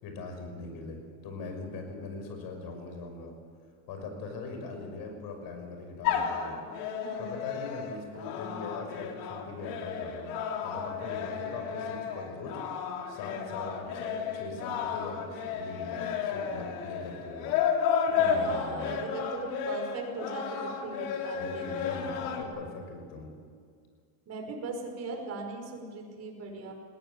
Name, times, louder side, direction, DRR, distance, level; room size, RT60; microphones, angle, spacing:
voice 1, 0.0-3.3 3.9-6.6 7.2-10.3 10.6-12.6 13.1-17.5 18.2-19.0 21.3-23.3, left 3 dB, 55° left, 4 dB, 6.2 m, -41 dB
sound 1, 6.0-22.4, left 7 dB, 75° left, 3.1 m, -32 dB
voice 2, 7.0-7.3 18.1-22.1 24.3-26.7, right 3 dB, 35° right, 2 dB, 5.4 m, -39 dB
21.0 x 17.5 x 8.6 m, 2.1 s
supercardioid pair, 135°, 43 cm